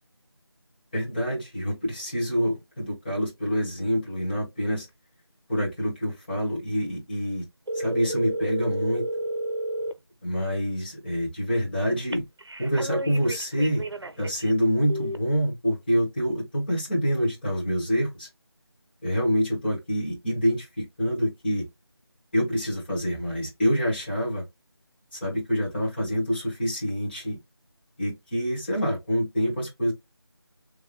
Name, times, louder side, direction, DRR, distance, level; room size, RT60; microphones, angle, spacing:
voice 1, 0.9-4.9 5.5-7.5 7.7-9.0 10.2-12.2 12.6-13.9 14.2-18.3 19.0-21.6 22.3-24.4 25.1-27.4 28.0-29.9, equal, 20° left, 2.0 m, -26 dB
sound 1, 7.7-9.9 12.1-14.5 14.9-15.2, right 1 dB, 75° right, 0.7 m, -31 dB
3.6 x 3.1 x 3.1 m
figure-of-eight pair, 170°, 14 cm